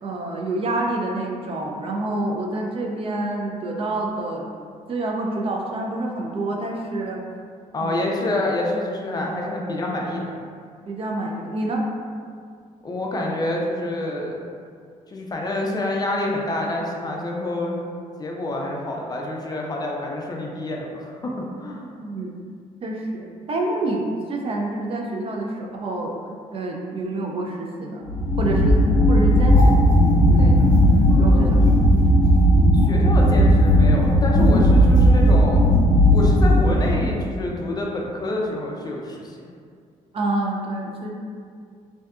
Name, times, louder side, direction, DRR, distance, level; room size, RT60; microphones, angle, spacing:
voice 1, 0.0-4.5 4.9-7.2 7.8-8.2 9.3-9.5 10.9-11.8 22.0-22.3 22.8-28.1 28.4-29.8 30.3-30.7 31.2-32.2 40.1-41.1, right 2 dB, 40° right, 0 dB, 0.4 m, -28 dB
voice 2, 7.7-10.3 12.8-14.4 15.1-17.8 18.2-21.9 31.1-31.5 32.9-35.6 36.1-39.4, left 1 dB, 25° left, -1 dB, 0.4 m, -27 dB
sound 1, 28.0-37.2, equal, 70° left, 0.6 m, -16 dB
2.6 x 2.2 x 2.3 m, 2.2 s
cardioid pair, 90°, 14 cm